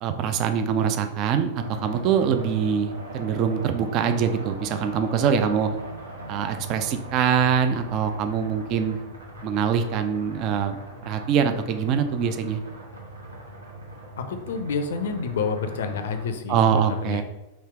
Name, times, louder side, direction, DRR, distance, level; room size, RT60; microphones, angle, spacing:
voice 1, 0.0-5.7 6.3-9.0 9.4-12.6 16.5-17.2, right 7 dB, 40° right, 7 dB, 0.4 m, -24 dB
sound 1, 1.5-16.3, right 1 dB, 75° right, 0.9 m, -40 dB
voice 2, 14.2-17.2, left 5 dB, 60° left, 7 dB, 0.4 m, -29 dB
3.2 x 3.0 x 4.3 m, 0.98 s
figure-of-eight pair, 90°, 0 cm